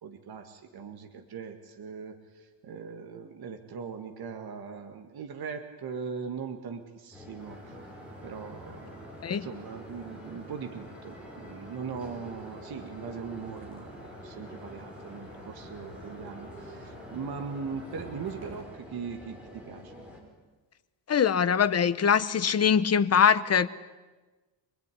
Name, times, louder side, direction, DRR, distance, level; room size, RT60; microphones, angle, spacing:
voice 1, 0.0-7.8 8.2-9.1 9.4-19.9, right 6 dB, 55° right, 5 dB, 2.0 m, -40 dB
sound 1, 7.1-20.2, left 1 dB, ahead, 4.9 m, -47 dB
sound 2, 7.4-18.6, right 1 dB, 30° right, 7.5 m, -50 dB
voice 2, 21.1-23.7, left 7 dB, 35° left, 12 dB, 1.0 m, -23 dB
26.0 x 21.0 x 10.0 m, 1.2 s
wide cardioid pair, 175°, 45 cm